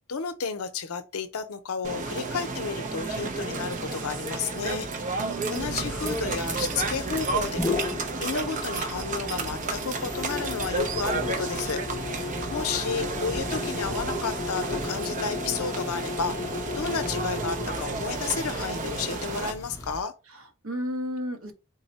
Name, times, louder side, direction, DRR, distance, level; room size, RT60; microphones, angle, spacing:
voice 1, 0.1-4.9 5.5-7.8 8.2-11.8 12.5-16.4 16.7-20.1, left 5 dB, 90° left, 0.6 m, -32 dB
sound 1, 1.8-19.5, right 3 dB, 35° right, 0.5 m, -32 dB
voice 2, 5.2-5.9 12.3-12.6 20.3-21.6, equal, 75° right, 0.9 m, -34 dB
sound 2, 5.6-20.0, left 3 dB, 15° left, 0.5 m, -35 dB
3.9 x 2.1 x 3.9 m
head